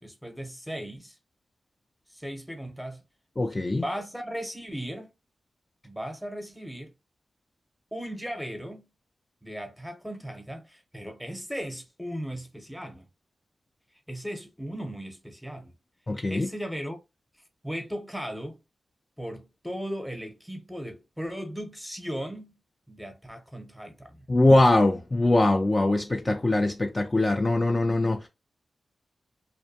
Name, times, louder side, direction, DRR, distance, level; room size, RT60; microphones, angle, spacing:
voice 1, 0.0-1.1 2.1-3.0 3.8-5.1 5.8-6.9 7.9-8.9 9.4-13.1 14.1-15.8 16.3-17.0 17.6-18.6 19.2-22.5 22.9-24.2, equal, ahead, 0.7 m, -37 dB
voice 2, 3.4-3.8 16.1-16.5 24.3-28.3, left 2 dB, 30° left, 0.4 m, -22 dB
2.4 x 2.1 x 2.7 m
cardioid pair, 55°, 0 cm